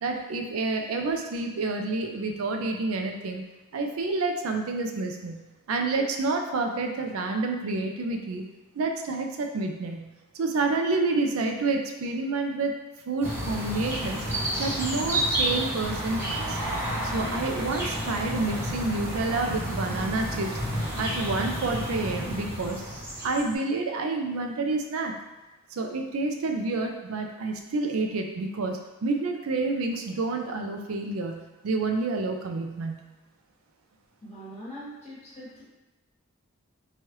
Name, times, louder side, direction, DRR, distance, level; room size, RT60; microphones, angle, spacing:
voice 1, 0.0-3.4 3.7-8.4 8.7-10.1 10.3-12.7 13.1-14.2 14.6-16.6 17.1-20.6 21.0-22.8 23.2-25.1 25.7-33.0, right 3 dB, 80° right, 4 dB, 0.4 m, -29 dB
sound 1, 13.2-23.5, right 1 dB, 10° right, 0.6 m, -30 dB
voice 2, 34.2-35.6, equal, 30° left, -9 dB, 1.2 m, -42 dB
3.0 x 2.3 x 3.0 m, 1.1 s
head